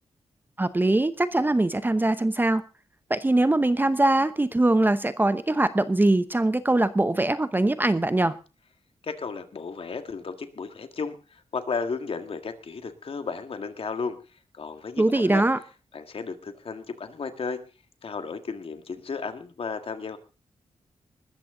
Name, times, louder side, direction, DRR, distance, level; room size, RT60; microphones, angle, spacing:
voice 1, 0.6-2.6 3.1-8.3 15.0-15.6, right 2 dB, 15° right, 12 dB, 0.8 m, -22 dB
voice 2, 9.0-14.2 14.5-15.4 15.9-17.6 18.0-20.2, left 5 dB, 55° left, 8 dB, 2.0 m, -34 dB
20.0 x 14.0 x 3.8 m, 0.34 s
wide cardioid pair, 110°, 12 cm